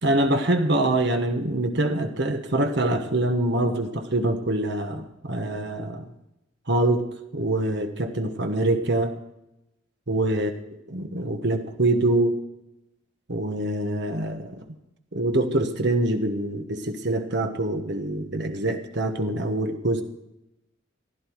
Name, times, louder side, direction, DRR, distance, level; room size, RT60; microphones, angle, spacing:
voice 1, 0.0-6.1 6.7-7.1 7.3-9.1 10.1-10.5 10.9-12.4 13.3-14.6 15.1-20.0, right 1 dB, 60° right, 5 dB, 1.3 m, -24 dB
15.5 x 12.0 x 4.7 m, 0.87 s
head